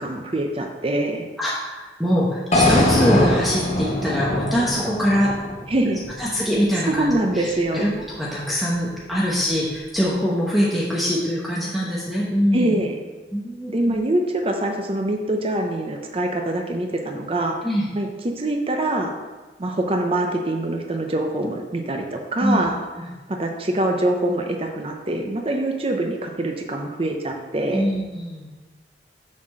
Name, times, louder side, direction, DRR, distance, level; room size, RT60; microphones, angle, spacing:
voice 1, 0.0-1.2 5.7-6.0 6.9-7.9 12.5-13.0 13.7-17.6 17.9-19.1 19.6-22.8 23.3-27.8, right 1 dB, 35° right, 3 dB, 0.7 m, -24 dB
voice 2, 1.4-5.3 6.2-12.8 13.3-14.0 17.6-17.9 22.4-22.7 27.7-28.5, equal, ahead, -6 dB, 1.0 m, -23 dB
sound 1, 2.5-6.6, left 1 dB, 40° left, 1.3 m, -22 dB
7.2 x 4.3 x 6.4 m, 1.2 s
head